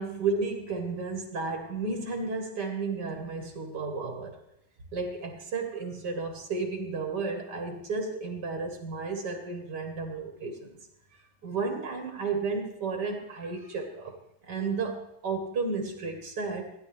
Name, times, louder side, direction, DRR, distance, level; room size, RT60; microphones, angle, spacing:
voice 1, 0.0-4.4 4.9-10.8 11.4-14.2 14.5-16.7, right 4 dB, 85° right, 4 dB, 2.1 m, -33 dB
16.0 x 10.0 x 3.4 m, 0.80 s
omnidirectional pair, 1.8 m